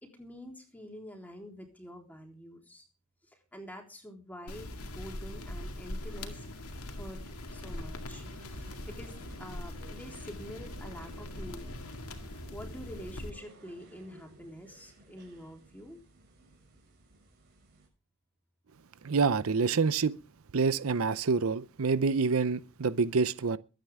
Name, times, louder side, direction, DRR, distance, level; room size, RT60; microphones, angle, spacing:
voice 1, 0.0-2.8 3.5-6.4 6.8-7.2 7.5-8.2 8.5-11.8 12.5-16.0, equal, 5° left, 3.6 m, -47 dB
sound 1, 4.5-13.3, left 1 dB, 80° left, 2.2 m, -41 dB
sound 2, 6.0-17.9, right 2 dB, 45° right, 6.4 m, -56 dB
voice 2, 19.0-20.1 20.5-23.6, right 4 dB, 70° right, 0.6 m, -27 dB
22.5 x 9.1 x 3.6 m
head